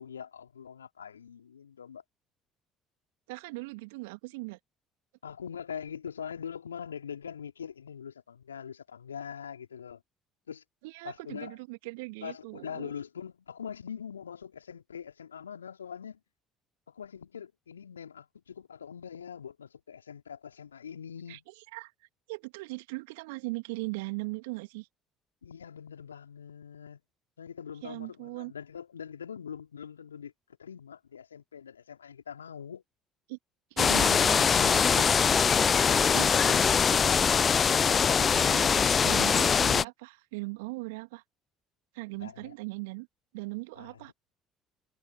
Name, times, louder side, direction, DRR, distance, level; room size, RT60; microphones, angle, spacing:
voice 1, 0.0-2.0 5.2-10.0 10.5-10.6 11.0-11.6 12.2-16.2 16.9-21.4 25.4-27.0 27.4-30.3 30.6-32.8 42.2-42.6 43.7-43.9, left 7 dB, 80° left, 3.2 m, -43 dB
voice 2, 3.3-4.6 10.8-12.9 21.3-21.4 21.7-21.9 22.3-24.9 27.8-28.5 33.3-33.4 33.7-35.3 36.1-37.4 37.8-41.2 41.9-43.1 43.3-44.1, right 25 dB, 70° right, 2.1 m, -39 dB
sound 1, 33.8-39.8, left 6 dB, 35° left, 0.4 m, -23 dB
figure-of-eight pair, 55°, 0 cm